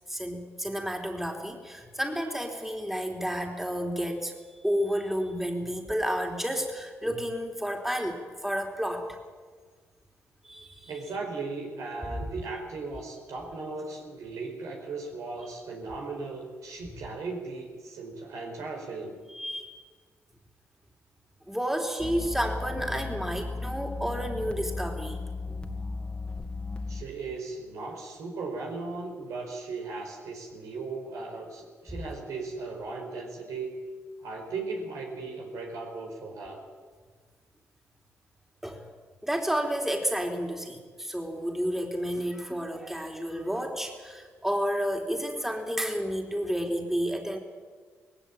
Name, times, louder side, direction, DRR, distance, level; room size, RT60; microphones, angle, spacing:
voice 1, 0.1-4.3 4.6-9.2 10.4-10.9 12.2-12.3 19.3-19.7 21.5-25.2 38.6-38.8 39.2-47.4, equal, 5° right, 2 dB, 3.5 m, -31 dB
voice 2, 10.8-19.1 26.9-33.8 34.2-36.6, right 3 dB, 80° right, 1 dB, 4.9 m, -37 dB
sound 1, 22.0-27.0, left 3 dB, 15° left, 2.2 m, -35 dB
19.0 x 16.5 x 8.9 m, 1.5 s
supercardioid pair, 60°, 6 cm